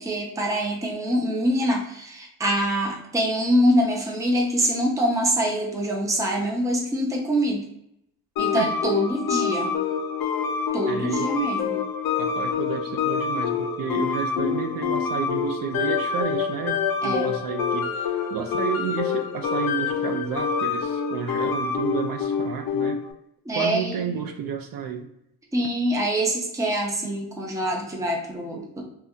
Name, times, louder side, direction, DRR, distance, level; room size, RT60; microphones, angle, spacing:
voice 1, 0.0-7.6 8.4-9.8 10.7-11.8 17.0-17.3 23.5-24.2 25.5-28.8, equal, 10° right, 0 dB, 0.5 m, -24 dB
sound 1, 8.4-23.1, left 6 dB, 65° left, 0.5 m, -26 dB
voice 2, 10.9-11.4 12.2-23.0 23.5-25.1, right 7 dB, 65° right, 5 dB, 0.5 m, -31 dB
2.6 x 2.2 x 3.5 m, 0.80 s
cardioid pair, 155°, 38 cm